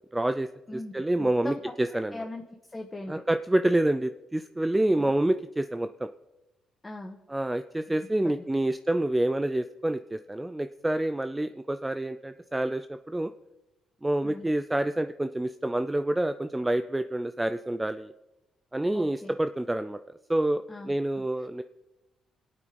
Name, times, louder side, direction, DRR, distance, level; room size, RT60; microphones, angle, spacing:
voice 1, 0.1-2.2 3.1-6.1 7.3-13.3 14.0-18.1 18.7-21.6, right 1 dB, 10° right, 10 dB, 0.5 m, -28 dB
voice 2, 1.2-1.6 2.1-2.4 2.7-3.2 5.0-5.1 6.8-7.2 14.2-14.5 18.9-19.3 20.7-21.2, left 2 dB, 20° left, 3 dB, 1.4 m, -39 dB
25.5 x 8.8 x 5.2 m, 1.0 s
cardioid pair, 90°, 0 cm